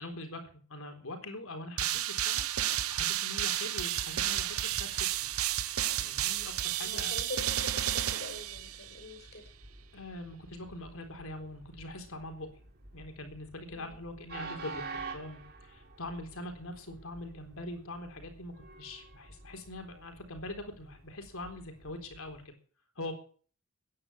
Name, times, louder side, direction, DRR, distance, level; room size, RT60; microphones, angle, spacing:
voice 1, 0.0-5.1 6.0-7.2 9.9-12.5 12.9-22.5 23.0-23.1, left 2 dB, 65° left, 5 dB, 3.9 m, -43 dB
sound 1, 1.8-9.0, right 12 dB, 70° right, 0.9 m, -32 dB
Train, 3.9-22.5, right 3 dB, 45° right, 3.4 m, -50 dB
voice 2, 6.8-9.5 13.7-13.9, left 3 dB, 50° left, 4 dB, 6.4 m, -44 dB
15.0 x 10.5 x 7.1 m, 0.43 s
head